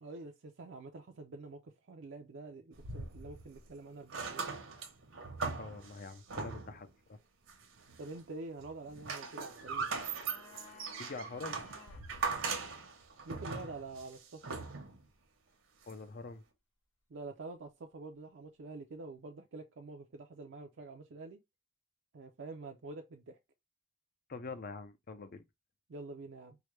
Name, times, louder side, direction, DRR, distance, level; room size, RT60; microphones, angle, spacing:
voice 1, 0.0-4.5 8.0-9.9 13.3-14.6 17.1-21.4 22.1-23.4 25.9-26.6, right 3 dB, 65° right, 0.5 m, -47 dB
sound 1, 2.7-3.7 4.0-6.9 7.5-8.2 8.6-15.1 15.9-16.0, right 4 dB, 80° right, 1.0 m, -40 dB
voice 2, 5.6-7.2 10.7-11.6 15.9-16.4 24.3-25.4, left 3 dB, 50° left, 0.5 m, -45 dB
sound 2, 9.6-12.1 12.3-12.4, left 4 dB, 85° left, 1.8 m, -57 dB
4.6 x 2.2 x 3.2 m
head